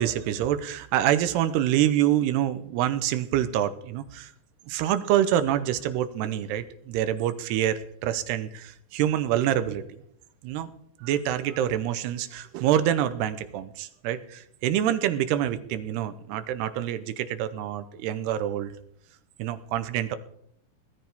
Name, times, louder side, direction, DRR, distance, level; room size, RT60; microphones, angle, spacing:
voice 1, 0.0-4.3 4.7-9.8 10.4-10.7 11.0-18.7 19.4-20.2, right 11 dB, 85° right, 12 dB, 2.9 m, -26 dB
19.0 x 13.5 x 3.6 m, 0.70 s
omnidirectional pair, 4.8 m